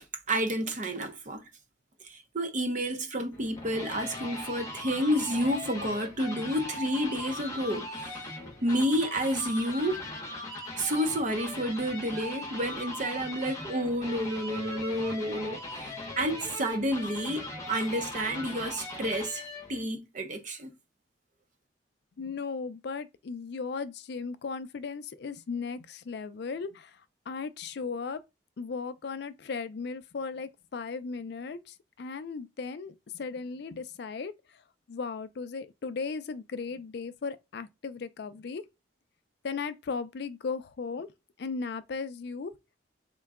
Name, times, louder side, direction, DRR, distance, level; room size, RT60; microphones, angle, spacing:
voice 1, 0.0-1.4 2.0-8.1 8.6-10.0 10.8-19.4 19.7-20.7, equal, 40° right, 0.6 m, -30 dB
sound 1, 3.3-19.8, left 2 dB, 15° left, 0.8 m, -39 dB
voice 2, 22.2-28.2 28.6-34.6 34.9-38.6 39.4-41.1 41.4-42.5, left 4 dB, 55° left, 0.4 m, -36 dB
3.7 x 2.2 x 3.5 m
head